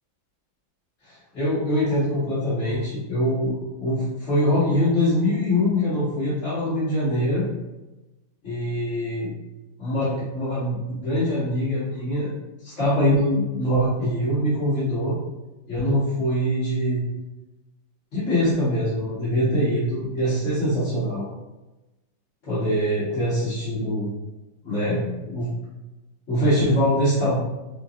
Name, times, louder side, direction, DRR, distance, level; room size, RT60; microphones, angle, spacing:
voice 1, 1.0-3.5 3.8-7.4 8.4-9.3 9.8-12.3 12.6-15.2 15.7-17.0 18.1-21.3 22.4-24.1 24.6-25.5 26.3-27.4, equal, 40° left, -14 dB, 1.6 m, -23 dB
5.5 x 2.3 x 2.4 m, 1.1 s
omnidirectional pair, 2.0 m